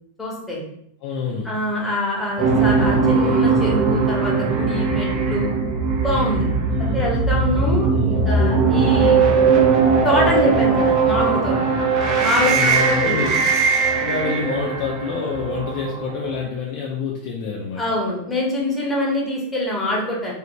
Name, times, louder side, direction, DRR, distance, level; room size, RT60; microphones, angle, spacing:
voice 1, 0.2-0.6 1.4-5.5 6.0-6.5 6.9-9.2 10.0-11.7 12.2-13.3 17.8-20.3, left 1 dB, 15° left, -4 dB, 1.1 m, -24 dB
voice 2, 1.0-1.5 6.7-7.1 7.9-8.2 12.4-18.0, left 5 dB, 45° left, -2 dB, 0.4 m, -28 dB
sound 1, 2.4-16.4, right 4 dB, 40° right, 0.6 m, -19 dB
3.2 x 2.5 x 3.0 m, 0.72 s
figure-of-eight pair, 90°, 0 cm